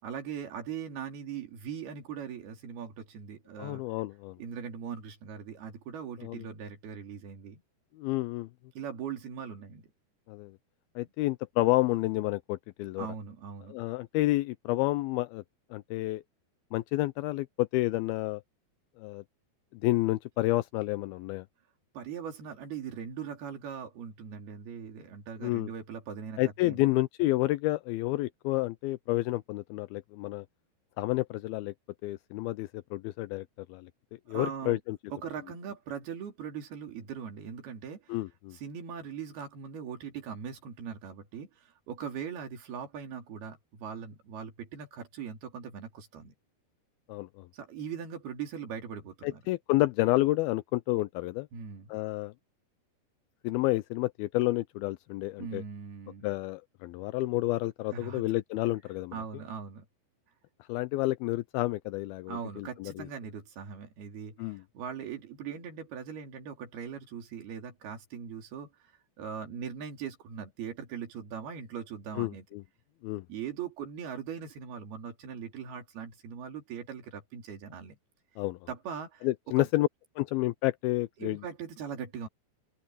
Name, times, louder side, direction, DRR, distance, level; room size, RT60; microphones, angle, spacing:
voice 1, 0.0-3.8 4.4-7.6 8.7-9.9 13.0-13.8 21.9-26.9 34.3-34.8 35.1-38.2 38.5-46.3 47.5-49.4 51.5-51.9 55.4-56.3 57.9-58.2 59.1-59.8 62.3-68.9 69.2-72.4 73.3-78.0 78.7-79.3 79.6-79.7 81.2-82.3, right 7 dB, 65° right, 4.9 m, -40 dB
voice 2, 3.6-4.4 6.2-6.5 8.0-8.5 10.3-10.5 11.0-13.1 13.7-15.4 15.7-16.2 16.7-18.4 19.0-19.2 19.7-21.5 25.4-25.7 26.4-30.5 31.0-31.7 32.0-33.9 34.3-35.0 38.1-38.6 47.1-47.5 49.2-51.5 51.9-52.3 53.4-55.6 56.2-59.1 60.7-63.1 64.4-64.6 72.1-72.6 73.0-73.2 78.4-78.6 79.2-79.9 80.2-81.4, left 18 dB, 90° left, 2.2 m, -30 dB
open air
omnidirectional pair, 4.9 m